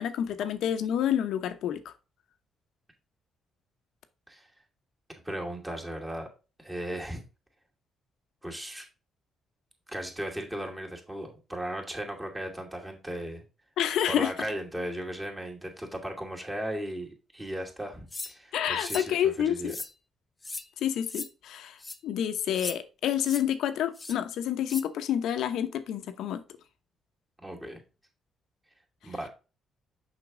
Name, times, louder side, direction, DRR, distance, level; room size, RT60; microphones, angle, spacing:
voice 1, 0.0-1.9 13.8-14.3 18.5-19.7 20.8-21.8 22.0-26.4, left 10 dB, 80° left, 0.8 m, -28 dB
voice 2, 5.2-6.3 6.6-7.2 8.4-8.9 9.9-13.4 14.1-19.7 27.4-27.8 29.0-29.3, right 1 dB, 15° right, 2.5 m, -36 dB
sound 1, 18.1-18.3 18.8-19.1 19.6-19.9 20.4-20.7 21.1-21.3 21.8-22.0 22.5-22.8 23.2-23.4 23.9-24.2 24.7-24.8, left 3 dB, 20° left, 0.7 m, -37 dB
6.2 x 5.9 x 3.7 m
cardioid pair, 90°, 0 cm